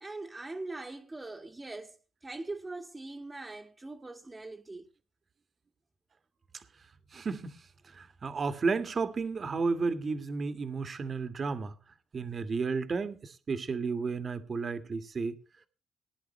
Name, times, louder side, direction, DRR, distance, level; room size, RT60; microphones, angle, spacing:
voice 1, 0.0-4.9, right 2 dB, 20° right, 1.8 m, -42 dB
voice 2, 7.1-7.6 7.9-11.7 12.1-15.4, right 4 dB, 40° right, 1.8 m, -32 dB
19.5 x 10.5 x 3.2 m
cardioid pair, 90°, 0 cm